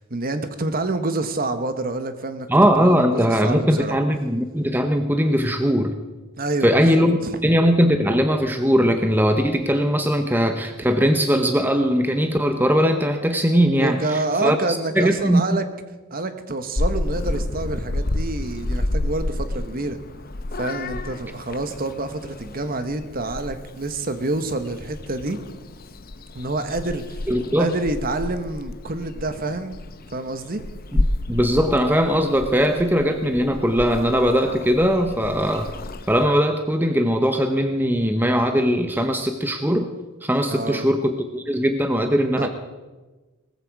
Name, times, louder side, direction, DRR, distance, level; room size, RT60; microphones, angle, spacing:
voice 1, 0.0-2.5 2.8-4.0 6.4-7.0 7.3-7.4 13.7-15.6 16.1-20.0 20.5-25.4 26.3-27.2 27.6-29.8 30.1-30.6 40.5-40.9 42.4-42.5, right 2 dB, 40° right, 9 dB, 1.1 m, -27 dB
voice 2, 2.5-6.0 6.6-15.4 27.3-27.7 30.9-35.7 36.1-39.9 40.2-42.5, equal, 10° right, 6 dB, 0.7 m, -20 dB
Purr / Meow, 16.8-36.3, left 1 dB, 40° left, 0.8 m, -30 dB
19.0 x 14.5 x 4.7 m, 1.2 s
head